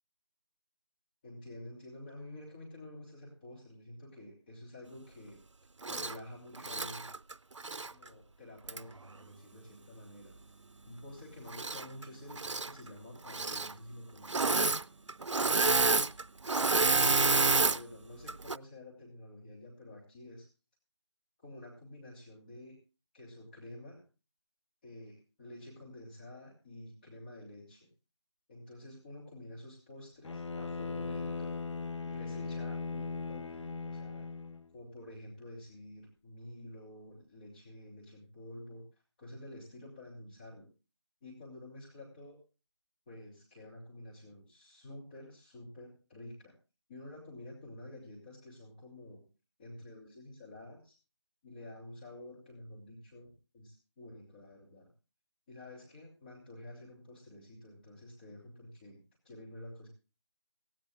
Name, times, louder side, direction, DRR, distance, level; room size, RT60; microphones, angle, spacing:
voice 1, 1.2-5.4 5.9-7.1 7.9-10.4 10.8-14.7 17.0-20.5 21.4-22.8 23.1-24.0 24.8-27.9 28.5-31.6 32.0-34.3 34.7-38.8 39.2-40.7 41.2-42.4 43.1-46.5 46.9-49.2 49.6-51.0 51.4-54.9 55.5-59.0 59.2-59.9, left 1 dB, 20° left, -3 dB, 2.7 m, -49 dB
Engine / Mechanisms, 5.8-6.2 6.6-7.9 8.7-8.8 11.5-12.0 12.3-12.7 13.3-13.7 14.2-14.8 15.1-17.8 18.3-18.6, right 3 dB, 80° right, 0.5 m, -28 dB
Bowed string instrument, 30.2-34.7, left 4 dB, 70° left, 0.8 m, -38 dB
18.0 x 16.5 x 2.4 m, 0.32 s
figure-of-eight pair, 165°, 15 cm